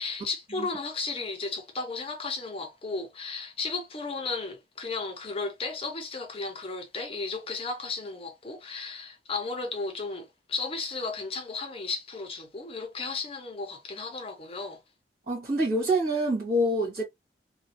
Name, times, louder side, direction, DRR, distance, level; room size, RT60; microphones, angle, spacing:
voice 1, 0.0-14.8, left 3 dB, 30° left, 0.7 m, -34 dB
voice 2, 15.3-17.0, right 1 dB, 55° right, 1.8 m, -26 dB
3.1 x 2.2 x 2.8 m
head